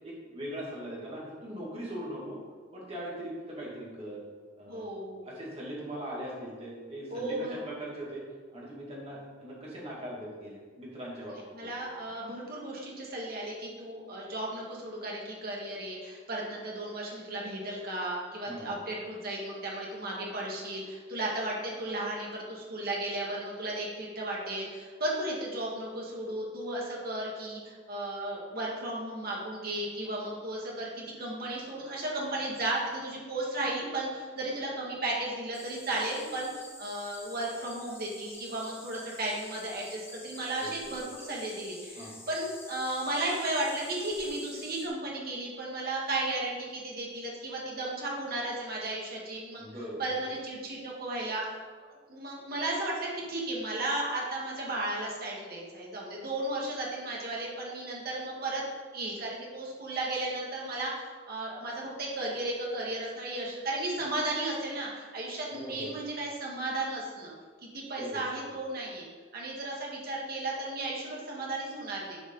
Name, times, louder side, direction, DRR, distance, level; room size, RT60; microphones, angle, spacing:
voice 1, 0.0-2.4 2.7-4.2 4.6-4.8 5.2-8.2 8.5-11.7 18.4-18.8 40.6-41.0 42.0-42.2 49.6-50.0 65.5-66.0 68.0-68.6, right 1 dB, 35° right, -6 dB, 2.6 m, -40 dB
voice 2, 4.7-5.3 7.1-7.6 11.5-49.7 50.0-51.4 52.1-58.6 58.9-67.3 67.6-69.1 69.3-72.2, right 1 dB, 55° right, -3 dB, 2.0 m, -34 dB
sound 1, 35.5-44.9, left 3 dB, 15° left, 0.8 m, -49 dB
10.5 x 5.2 x 4.0 m, 1.5 s
head